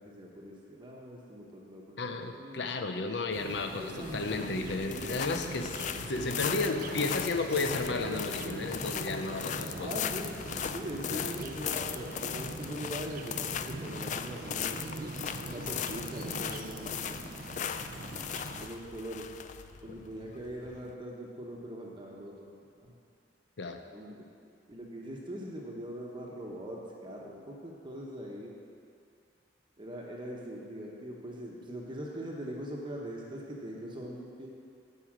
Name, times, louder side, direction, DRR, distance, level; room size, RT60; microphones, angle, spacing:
voice 1, 0.0-2.6 3.6-5.4 5.7-5.8 9.7-10.4 10.7-14.8 15.4-17.8 18.1-18.2 18.6-19.3 19.8-22.6 22.8-22.9 23.9-24.3 24.7-28.5 29.8-34.5, equal, 25° right, -2 dB, 1.1 m, -42 dB
voice 2, 2.0-5.7 6.0-9.9 11.1-11.3 23.6-23.8, left 3 dB, 75° left, 6 dB, 0.7 m, -33 dB
sound 1, 3.3-18.7, right 3 dB, 55° right, 0.5 m, -43 dB
sound 2, 4.0-20.9, left 8 dB, 45° left, 0.3 m, -38 dB
9.8 x 4.9 x 7.4 m, 2.5 s
head